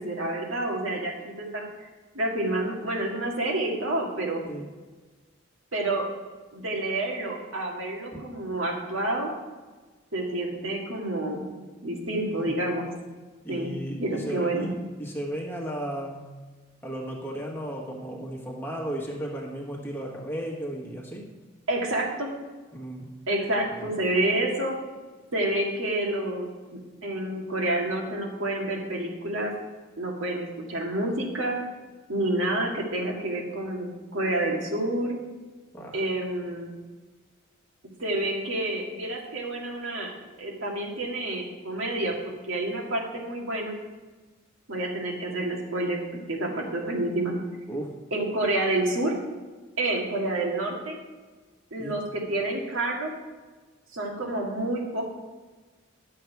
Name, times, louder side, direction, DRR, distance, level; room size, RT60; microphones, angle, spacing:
voice 1, 0.0-1.9 2.1-4.4 5.7-6.1 6.5-9.3 10.1-11.5 11.8-12.9 13.5-14.7 21.7-22.3 23.3-24.8 25.3-26.5 27.0-29.5 30.0-31.6 32.1-35.2 35.9-36.7 38.0-40.1 40.4-43.7 44.7-47.4 48.1-49.1 49.8-51.0 51.7-53.1 53.9-55.0, right 1 dB, 80° right, -1 dB, 2.0 m, -28 dB
voice 2, 12.1-12.6 13.4-14.7 15.0-16.3 16.8-21.3 22.7-23.1 23.7-23.9 35.7-36.0 47.7-48.0 51.8-52.0, right 1 dB, 10° left, -1 dB, 1.4 m, -35 dB
11.0 x 6.8 x 4.7 m, 1.3 s
head